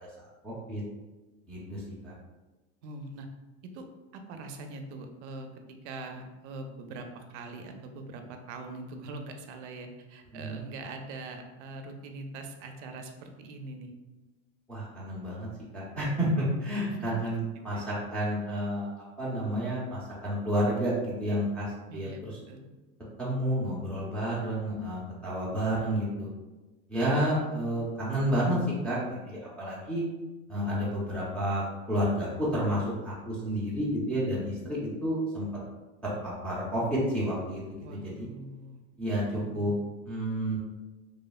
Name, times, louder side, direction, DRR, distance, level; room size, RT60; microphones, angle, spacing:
voice 1, 0.4-0.8 1.5-2.1 10.3-10.6 14.7-15.5 15.7-22.4 23.2-26.3 26.9-28.6 28.8-30.0 30.5-35.5 36.0-38.3 39.0-39.7 40.1-40.6, equal, 5° left, -9 dB, 0.3 m, -30 dB
voice 2, 2.8-3.3 3.7-3.9 4.1-5.5 5.8-13.9 17.0-17.1 17.7-17.9 21.9-22.7 37.8-38.8 39.3-39.7, right 2 dB, 75° right, 5 dB, 0.5 m, -42 dB
3.0 x 2.0 x 2.3 m, 1.1 s
supercardioid pair, 150°, 35 cm